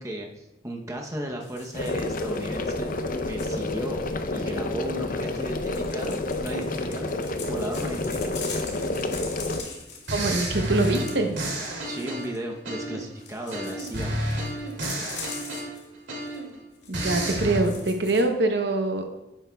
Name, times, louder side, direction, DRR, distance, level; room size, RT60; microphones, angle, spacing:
voice 1, 0.0-4.0 4.3-7.1 7.5-8.3 11.8-14.1, equal, 15° right, 1 dB, 0.8 m, -35 dB
sound 1, 1.4-3.5 5.4-12.4 13.2-15.8 16.2-16.4 16.7-16.9 17.4-18.2, left 5 dB, 75° left, 1.9 m, -42 dB
sound 2, 1.7-9.6, left 2 dB, 50° left, 0.6 m, -29 dB
sound 3, 9.5-9.7 10.1-13.1 13.5-16.5 16.9-17.6, right 1 dB, 90° right, 2.3 m, -31 dB
voice 2, 10.1-11.4 16.9-19.1, right 2 dB, 65° right, 5 dB, 0.8 m, -24 dB
10.0 x 8.9 x 2.3 m, 0.95 s
head